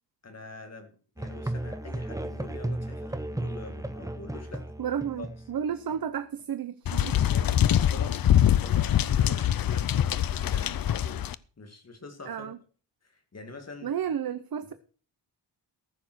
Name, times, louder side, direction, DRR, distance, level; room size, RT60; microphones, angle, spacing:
voice 1, 0.2-4.7 5.2-5.3 7.0-11.3 11.6-12.5 13.0-13.9, left 3 dB, 35° left, 5 dB, 2.2 m, -45 dB
Musical instrument, 1.2-6.0, right 1 dB, 10° right, 0.8 m, -35 dB
voice 2, 4.8-7.2 12.3-12.6 13.8-14.7, right 8 dB, 55° right, 12 dB, 0.8 m, -32 dB
sound 1, 6.9-11.3, left 11 dB, 55° left, 0.5 m, -24 dB
14.5 x 7.1 x 6.2 m, 0.39 s
wide cardioid pair, 155°, 43 cm